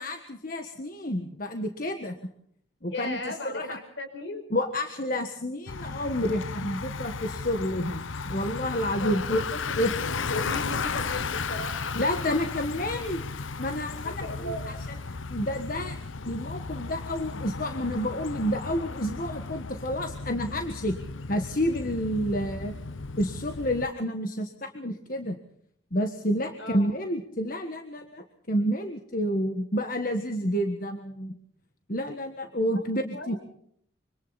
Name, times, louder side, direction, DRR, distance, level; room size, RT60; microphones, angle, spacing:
voice 1, 0.0-2.2 2.8-3.8 4.5-9.4 9.8-9.9 11.9-13.2 13.6-14.8 15.1-16.0 16.2-21.0 21.3-22.7 23.2-25.4 25.9-31.4 31.9-33.4, equal, 45° left, 6 dB, 1.5 m, -29 dB
voice 2, 2.9-4.4 8.9-11.9 14.0-14.7 26.6-26.9 32.7-32.8 33.1-33.4, left 1 dB, 70° left, 6 dB, 5.6 m, -37 dB
Bicycle, 5.7-23.9, left 4 dB, 85° left, 0.8 m, -35 dB
26.5 x 25.0 x 4.1 m, 0.66 s
head